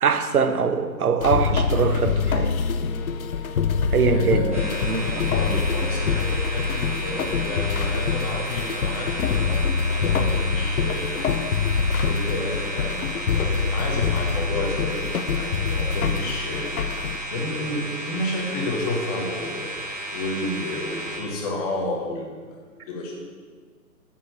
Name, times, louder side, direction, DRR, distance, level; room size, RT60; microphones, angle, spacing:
voice 1, 0.0-2.5 3.9-5.2 5.5-5.6, right 5 dB, 60° right, 9 dB, 1.1 m, -23 dB
sound 1, 1.2-17.2, left 5 dB, 60° left, 0.8 m, -25 dB
voice 2, 4.1-11.2 12.1-15.0 15.3-16.7 17.3-19.7 20.1-23.2, left 2 dB, 20° left, -1 dB, 1.7 m, -31 dB
sound 2, 4.5-21.2, right 1 dB, 10° right, 0.7 m, -33 dB
7.4 x 7.4 x 8.1 m, 1.5 s
hypercardioid pair, 155°, 49 cm